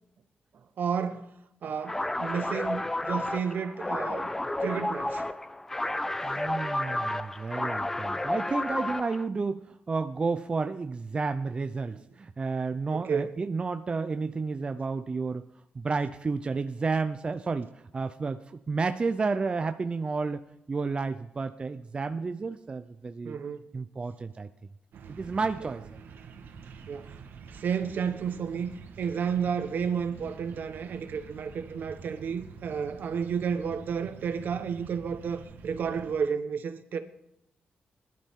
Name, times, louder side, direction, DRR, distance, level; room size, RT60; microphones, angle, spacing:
voice 1, 0.8-1.3 1.6-5.2 12.9-13.3 23.2-23.7 26.9-27.2 27.5-28.7 29.0-37.0, right 6 dB, 65° right, 1.2 m, -31 dB
sound 1, 1.8-9.2, left 1 dB, 10° left, 0.6 m, -31 dB
voice 2, 6.2-15.5 15.7-23.4 23.7-24.5 25.1-26.0, right 4 dB, 30° right, 0.6 m, -31 dB
sound 2, 24.9-36.1, right 6 dB, 90° right, 1.5 m, -47 dB
20.5 x 12.0 x 3.7 m
wide cardioid pair, 140°, 3 cm